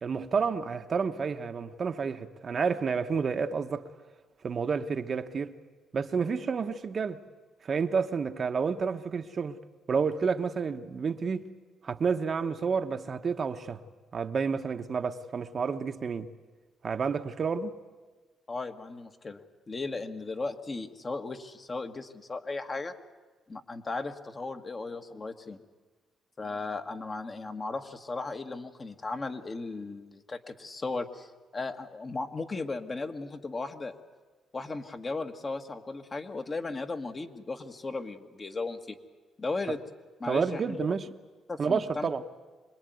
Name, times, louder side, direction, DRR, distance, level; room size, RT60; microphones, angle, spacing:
voice 1, 0.0-3.8 4.4-5.5 5.9-7.2 7.6-9.6 9.9-11.5 11.8-13.8 14.1-16.3 16.8-17.8 40.2-41.1 41.6-42.2, right 5 dB, 45° right, 1.1 m, -30 dB
voice 2, 18.5-19.4 19.7-22.9 23.5-25.6 26.4-34.0 34.5-39.0 39.4-39.8 40.2-40.8 41.5-42.1, left 3 dB, 30° left, 1.7 m, -36 dB
25.5 x 21.0 x 9.4 m
cardioid pair, 100°, 0 cm